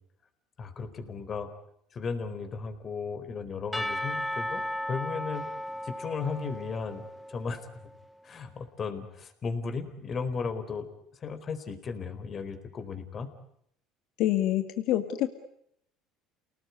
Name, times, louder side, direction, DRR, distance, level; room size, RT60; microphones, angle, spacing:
voice 1, 0.6-1.5 1.9-4.6 4.9-5.4 5.8-7.0 7.3-7.6 8.2-10.9 11.2-13.3, left 5 dB, 35° left, 9 dB, 4.3 m, -35 dB
Percussion / Church bell, 3.7-7.6, left 1 dB, 5° left, 1.5 m, -35 dB
voice 2, 14.2-15.3, left 13 dB, 65° left, 8 dB, 2.1 m, -26 dB
29.5 x 19.0 x 9.7 m, 0.74 s
supercardioid pair, 100°, 0 cm